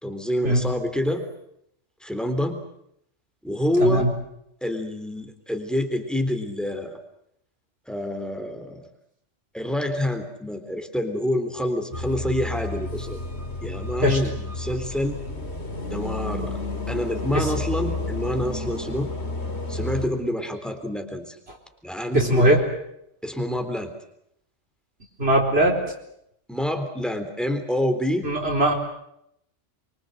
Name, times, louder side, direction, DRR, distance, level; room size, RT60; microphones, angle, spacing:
voice 1, 0.0-1.2 2.0-2.6 3.4-4.1 4.6-7.0 7.9-8.8 9.5-13.2 13.6-15.2 15.8-16.5 16.9-19.1 19.7-21.4 21.8-22.6 23.2-23.9 26.5-28.3, left 1 dB, ahead, 6 dB, 3.5 m, -27 dB
sound 1, 11.9-20.1, left 2 dB, 60° left, 3.0 m, -31 dB
voice 2, 22.1-22.6 25.2-25.8 28.2-28.7, right 1 dB, 55° right, 0 dB, 4.4 m, -20 dB
25.0 x 24.5 x 7.9 m, 0.76 s
omnidirectional pair, 1.2 m